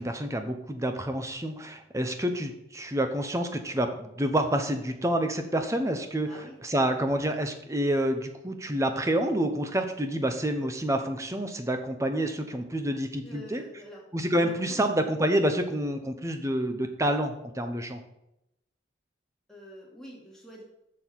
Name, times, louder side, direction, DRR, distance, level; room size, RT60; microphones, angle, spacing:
voice 1, 0.0-13.6 14.1-18.0, right 1 dB, 15° right, 7 dB, 0.9 m, -28 dB
voice 2, 6.3-6.6 6.9-7.0 13.2-14.0 14.4-14.8 19.5-20.6, equal, ahead, -4 dB, 2.5 m, -46 dB
7.0 x 6.4 x 7.5 m, 0.84 s
head